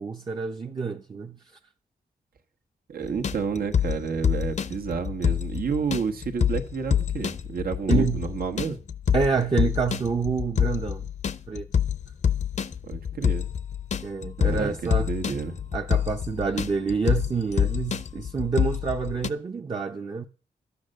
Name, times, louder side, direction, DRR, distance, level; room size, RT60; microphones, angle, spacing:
voice 1, 0.0-1.4 7.9-8.2 9.1-11.0 11.5-11.7 14.0-15.1 15.7-20.2, right 5 dB, 30° right, 0.6 m, -27 dB
voice 2, 2.9-8.8 12.8-13.5 14.4-15.6, right 6 dB, 85° right, 1.4 m, -30 dB
sound 1, 3.0-19.3, left 8 dB, 50° left, 0.7 m, -27 dB
12.0 x 8.4 x 6.5 m
wide cardioid pair, 135°, 15 cm